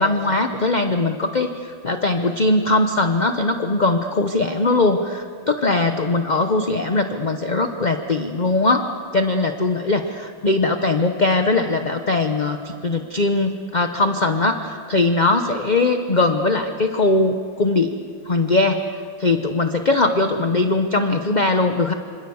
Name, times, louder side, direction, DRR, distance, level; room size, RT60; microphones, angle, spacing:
voice 1, 0.0-8.8 9.1-18.8 19.2-21.9, left 2 dB, 35° left, 6 dB, 0.7 m, -20 dB
26.5 x 26.0 x 7.1 m, 2.3 s
omnidirectional pair, 2.1 m